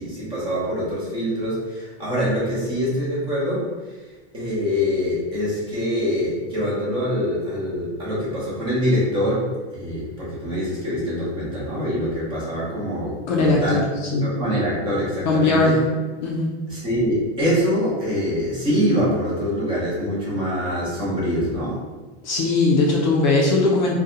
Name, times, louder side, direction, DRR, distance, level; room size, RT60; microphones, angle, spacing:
voice 1, 0.0-4.0 4.3-13.9 14.2-15.8 16.7-21.8, equal, 15° right, -7 dB, 0.7 m, -24 dB
voice 2, 13.3-13.8 14.1-14.3 15.3-15.8 16.2-16.5 22.2-24.0, left 3 dB, 40° left, -2 dB, 0.4 m, -19 dB
2.6 x 2.2 x 3.7 m, 1.3 s
supercardioid pair, 165°, 35 cm